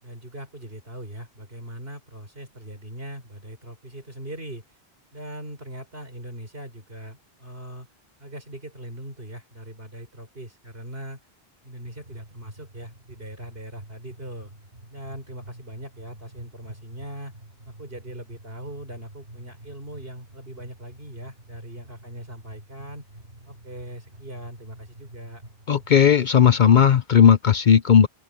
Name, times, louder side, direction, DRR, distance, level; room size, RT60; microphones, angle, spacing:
voice 1, 0.0-4.8 5.1-7.9 8.2-11.2 11.6-14.5 14.9-17.4 17.7-23.1 23.5-25.4, right 1 dB, 70° right, 5.5 m, -40 dB
sound 1, 11.8-27.0, right 1 dB, 85° right, 4.2 m, -48 dB
voice 2, 25.7-28.1, left 8 dB, 55° left, 0.7 m, -16 dB
open air
omnidirectional pair, 1.0 m